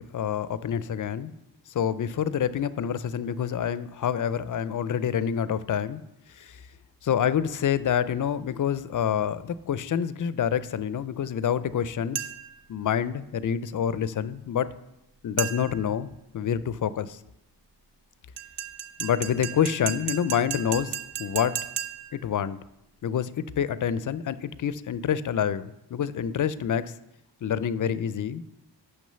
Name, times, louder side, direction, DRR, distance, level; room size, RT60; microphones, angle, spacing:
voice 1, 0.0-1.3 1.7-6.0 6.3-6.6 7.0-12.3 12.7-14.7 15.2-16.1 16.3-17.2 19.0-21.6 22.1-22.6 23.0-26.9 27.4-28.4, left 8 dB, 50° left, 16 dB, 0.4 m, -27 dB
sound 1, 12.1-12.6 15.4-15.9 18.4-22.2, right 9 dB, 75° right, 0.8 m, -34 dB
6.3 x 6.0 x 6.7 m, 0.88 s
cardioid pair, 85°, 42 cm